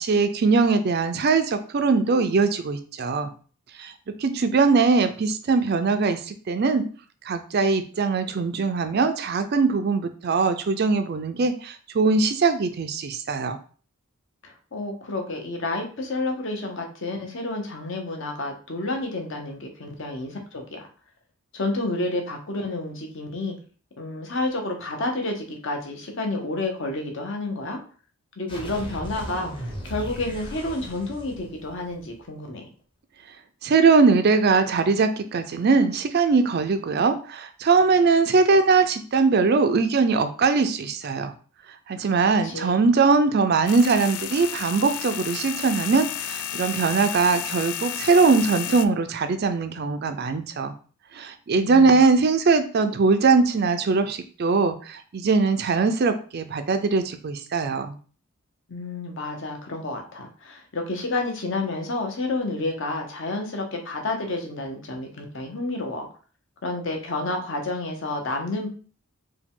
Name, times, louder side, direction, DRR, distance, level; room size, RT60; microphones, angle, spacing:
voice 1, 0.0-3.3 3.8-3.9 4.2-6.8 7.3-13.6 33.6-41.3 41.9-50.7 51.1-58.0, right 4 dB, 45° right, 9 dB, 0.4 m, -21 dB
voice 2, 14.4-20.9 21.5-23.5 24.0-27.8 28.4-32.7 41.9-42.9 51.5-52.0 58.7-66.1 66.6-68.7, left 2 dB, 55° left, 2 dB, 0.9 m, -30 dB
sound 1, 28.5-32.2, equal, 20° left, 0.8 m, -37 dB
sound 2, 43.7-48.8, left 9 dB, 75° left, 0.3 m, -32 dB
4.8 x 2.3 x 3.6 m, 0.40 s
head